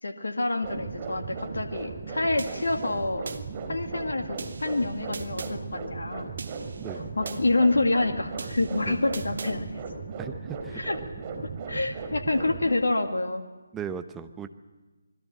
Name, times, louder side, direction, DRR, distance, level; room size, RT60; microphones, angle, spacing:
voice 1, 0.0-3.3 3.7-6.3 7.2-9.7 10.7-11.0 11.7-13.4, left 2 dB, 70° left, 5 dB, 2.0 m, -27 dB
sound 1, 0.6-12.7, right 4 dB, 25° right, 3.7 m, -37 dB
sound 2, 2.4-3.4 4.4-5.5 6.4-7.4 8.4-9.5, right 4 dB, 55° right, 1.9 m, -41 dB
voice 2, 6.8-7.2 8.9-9.1 10.2-10.8 13.7-14.5, right 7 dB, 10° right, 8 dB, 1.0 m, -37 dB
26.5 x 21.0 x 7.4 m, 1.2 s
figure-of-eight pair, 150°, 0 cm